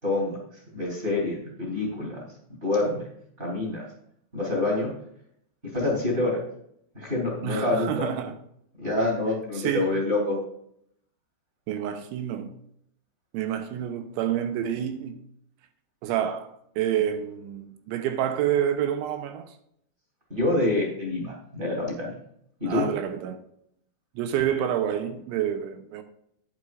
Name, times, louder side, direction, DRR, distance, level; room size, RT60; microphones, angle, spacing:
voice 1, 0.0-0.4 0.7-2.2 2.6-3.0 3.4-3.9 4.3-4.9 5.7-6.4 6.9-8.1 8.8-10.4 20.3-22.2 22.6-22.9, left 2 dB, 15° right, 2.6 m, -26 dB
voice 2, 7.4-8.3 9.6-10.0 11.7-12.5 13.3-15.2 16.0-16.5 16.8-19.5 22.7-23.4 24.2-26.0, right 10 dB, 80° right, 3.1 m, -28 dB
10.5 x 9.9 x 2.5 m
omnidirectional pair, 5.6 m